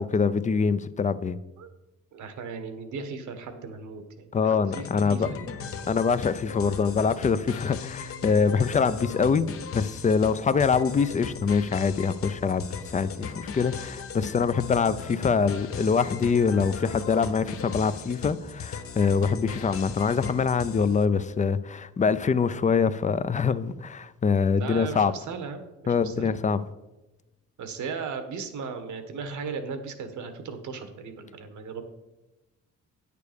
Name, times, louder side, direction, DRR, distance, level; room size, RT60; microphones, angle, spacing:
voice 1, 0.0-1.4 4.3-5.3 5.9-9.5 9.7-12.7 12.9-25.1 25.9-26.6, left 5 dB, 25° left, 14 dB, 0.5 m, -24 dB
voice 2, 2.1-5.7 24.5-26.3 27.6-31.8, right 5 dB, 75° right, 8 dB, 1.4 m, -37 dB
sound 1, 4.7-21.0, left 6 dB, 50° left, 0.8 m, -37 dB
9.4 x 6.8 x 5.1 m, 1.0 s
cardioid pair, 90°, 30 cm